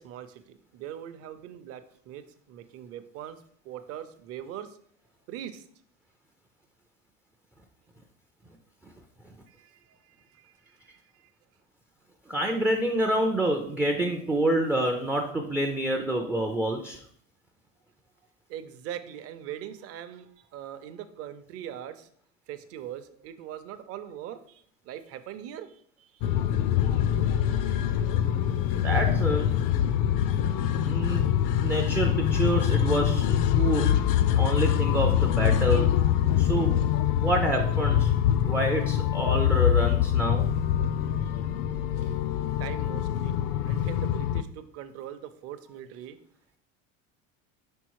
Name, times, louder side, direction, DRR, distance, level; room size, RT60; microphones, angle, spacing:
voice 1, 0.0-4.8 5.3-5.7 9.5-11.3 18.5-22.1 22.5-26.4 27.4-27.6 41.2-41.3 42.0-42.2 42.6-43.3 43.6-46.2, right 10 dB, 45° right, 10 dB, 0.6 m, -42 dB
voice 2, 12.3-17.0 28.8-29.5 30.8-31.3 31.6-33.9 34.4-36.0 36.4-38.1 38.4-40.5, right 1 dB, 5° right, 2 dB, 0.3 m, -27 dB
sound 1, 26.2-44.4, left 10 dB, 70° left, 0.5 m, -24 dB
5.3 x 3.9 x 4.6 m, 0.62 s
cardioid pair, 150°, 32 cm